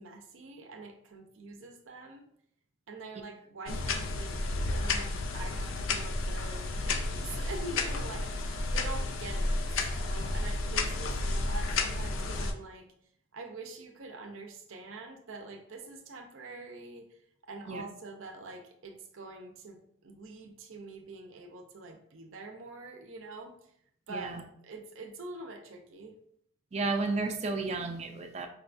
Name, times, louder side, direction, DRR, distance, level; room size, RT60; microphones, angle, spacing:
voice 1, 0.0-2.2 2.9-12.9 13.3-23.7 24.1-26.2, right 3 dB, 80° right, 4 dB, 0.6 m, -45 dB
sound 1, 3.7-12.5, left 2 dB, 75° left, 0.4 m, -32 dB
voice 2, 24.1-24.4 26.7-28.5, right 3 dB, 30° right, 5 dB, 0.3 m, -32 dB
5.1 x 2.3 x 2.5 m, 0.69 s
head